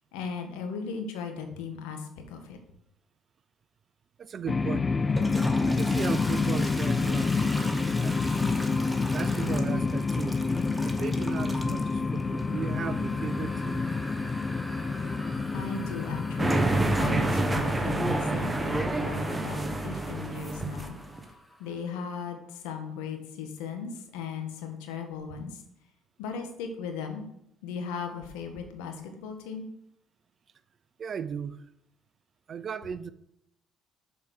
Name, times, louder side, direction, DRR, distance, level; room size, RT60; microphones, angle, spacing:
voice 1, 0.1-2.6 15.5-21.0 21.6-25.6 26.2-27.2 27.6-29.7, left 6 dB, 80° left, 1.4 m, -37 dB
voice 2, 4.2-4.9 5.7-8.5 9.1-10.4 10.8-13.8 31.0-31.6 32.5-33.1, right 7 dB, 45° right, 0.5 m, -36 dB
sound 1, 4.5-16.7, left 4 dB, 30° left, 0.4 m, -28 dB
Toilet flush, 5.0-21.7, equal, ahead, 1.3 m, -42 dB
sound 2, 16.4-21.2, right 2 dB, 15° right, 1.1 m, -27 dB
6.5 x 5.0 x 6.4 m
hypercardioid pair, 60°, 0 cm